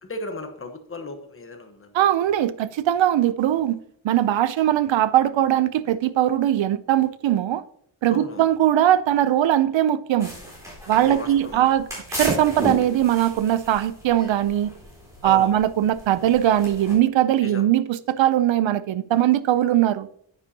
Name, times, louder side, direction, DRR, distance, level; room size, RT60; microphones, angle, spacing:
voice 1, 0.0-1.9 8.1-8.5 11.0-11.7 15.2-15.6 17.4-17.6, left 2 dB, 30° left, 1.0 m, -36 dB
voice 2, 1.9-7.6 8.0-10.3 10.9-14.7 15.2-20.1, right 12 dB, 70° right, 0.6 m, -20 dB
sound 1, 10.2-16.9, equal, 5° right, 4.3 m, -34 dB
10.0 x 9.8 x 2.8 m
wide cardioid pair, 175°, 47 cm